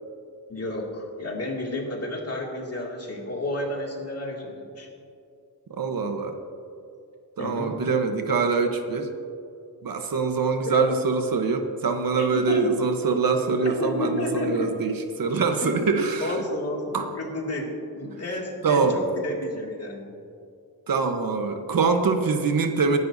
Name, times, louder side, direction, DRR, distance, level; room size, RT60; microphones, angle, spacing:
voice 1, 0.5-4.9 7.4-7.8 10.7-10.9 12.2-12.7 13.6-14.7 15.6-15.8 16.2-17.7 18.0-20.1, left 1 dB, 40° left, -1 dB, 2.3 m, -31 dB
voice 2, 5.7-6.3 7.4-9.1 9.8-16.4 16.9-17.1 18.6-19.0 20.9-23.0, right 4 dB, 60° right, 6 dB, 1.0 m, -24 dB
21.0 x 11.0 x 2.7 m, 2.5 s
wide cardioid pair, 140°, 38 cm